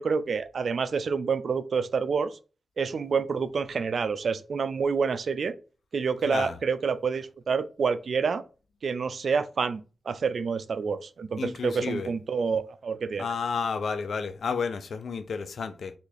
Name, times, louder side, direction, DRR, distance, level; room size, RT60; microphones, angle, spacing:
voice 1, 0.0-2.4 2.8-5.5 5.9-8.4 8.8-9.8 10.1-13.3, right 5 dB, 75° right, 0.3 m, -28 dB
voice 2, 11.4-12.1 13.2-15.9, left 5 dB, 80° left, 0.4 m, -31 dB
3.5 x 2.4 x 3.3 m
cardioid pair, 50°, 0 cm